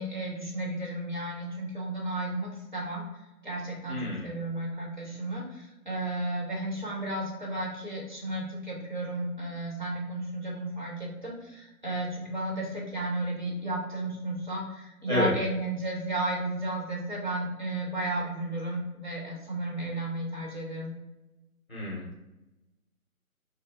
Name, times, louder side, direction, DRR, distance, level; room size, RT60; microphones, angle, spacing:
voice 1, 0.0-3.0 3.4-20.9, right 1 dB, 30° right, -4 dB, 1.1 m, -33 dB
voice 2, 3.9-4.3 15.1-15.3 21.7-22.2, equal, 15° left, -6 dB, 1.5 m, -29 dB
5.5 x 2.0 x 3.4 m, 1.0 s
figure-of-eight pair, 175°, 44 cm